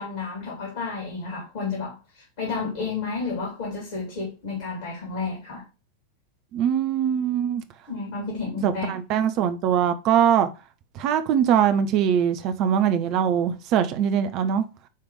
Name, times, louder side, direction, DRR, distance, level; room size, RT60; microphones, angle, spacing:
voice 1, 0.0-5.6 7.9-8.9, left 4 dB, 50° left, 3.3 m, -31 dB
voice 2, 6.5-7.6 8.6-10.5 10.9-14.6, right 9 dB, 40° right, 0.9 m, -22 dB
10.0 x 3.5 x 4.9 m
figure-of-eight pair, 90°, 0 cm